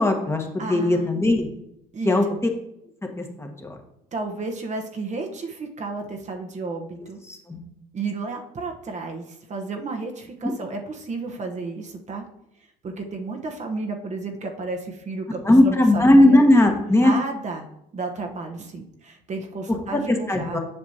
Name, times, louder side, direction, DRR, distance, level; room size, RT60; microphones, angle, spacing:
voice 1, 0.0-1.5 2.0-2.2 3.0-3.8 7.3-7.6 15.4-17.1 19.9-20.6, left 1 dB, 15° left, 3 dB, 1.4 m, -18 dB
voice 2, 0.6-1.1 1.9-2.4 4.1-7.2 7.9-12.2 12.8-16.4 17.0-17.7 17.9-20.6, right 3 dB, 40° right, 3 dB, 1.0 m, -32 dB
7.8 x 5.9 x 2.8 m, 0.80 s
supercardioid pair, 70°, 18 cm